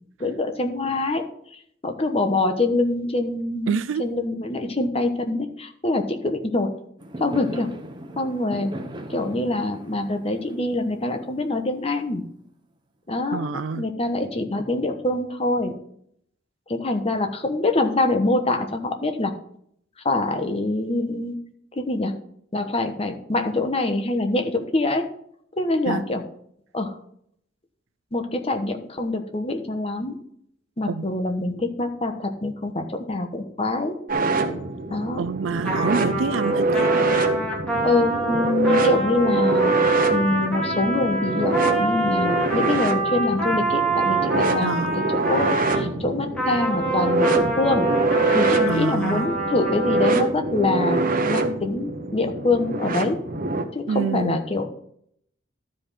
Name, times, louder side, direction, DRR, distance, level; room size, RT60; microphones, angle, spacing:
voice 1, 0.2-1.3 1.8-6.7 7.2-7.7 8.2-8.7 9.1-12.2 13.1-15.8 16.7-19.3 20.0-21.4 21.8-22.1 22.5-25.0 25.6-26.2 26.7-27.0 28.1-30.1 30.8-34.0 34.9-35.2 37.8-39.8 40.1-47.9 48.3-53.2 53.7-54.7, left 2 dB, 30° left, 6 dB, 1.1 m, -25 dB
voice 2, 3.7-4.0 13.3-13.8 25.9-26.0 30.9-31.1 35.2-36.9 44.6-44.9 48.7-49.2 53.9-54.4, right 5 dB, 90° right, 12 dB, 0.4 m, -27 dB
Fireworks, 7.0-12.2, right 1 dB, 25° right, 1.1 m, -38 dB
sound 1, 34.1-53.6, right 3 dB, 45° right, 1.0 m, -24 dB
Trumpet, 35.6-45.9 46.4-50.1, right 1 dB, 5° left, 2.2 m, -27 dB
12.0 x 5.1 x 5.7 m, 0.68 s
head